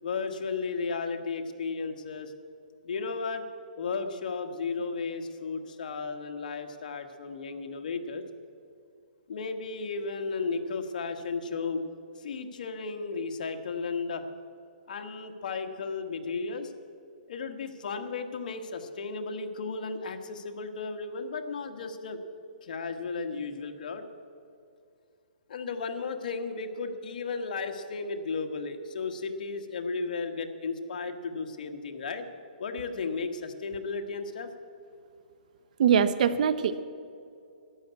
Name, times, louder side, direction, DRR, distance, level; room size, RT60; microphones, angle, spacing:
voice 1, 0.0-2.3 2.8-3.4 3.8-8.2 9.3-11.8 12.2-14.3 14.9-16.7 17.3-22.2 22.6-24.0 25.5-32.2 32.6-34.5, left 4 dB, 65° left, 6 dB, 1.5 m, -34 dB
voice 2, 35.8-36.8, right 8 dB, 55° right, 14 dB, 0.8 m, -23 dB
13.0 x 10.5 x 8.2 m, 2.4 s
hypercardioid pair, 150°, 5 cm